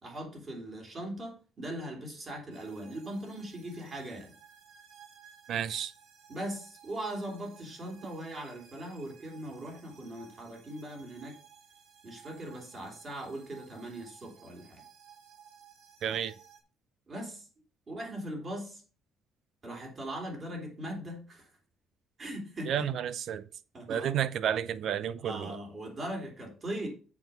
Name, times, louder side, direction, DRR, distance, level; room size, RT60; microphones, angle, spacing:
voice 1, 0.0-4.3 6.3-11.3 12.0-14.8 17.1-17.5 17.9-18.8 19.6-21.5 22.2-22.9 23.7-24.2 25.2-26.9, right 1 dB, 30° right, 3.1 m, -40 dB
sound 1, 2.5-16.6, right 8 dB, 80° right, 2.5 m, -57 dB
voice 2, 5.5-5.9 16.0-16.3 22.7-23.5 23.9-25.6, right 9 dB, 55° right, 0.6 m, -31 dB
7.1 x 6.2 x 5.5 m
cardioid pair, 160°, 0 cm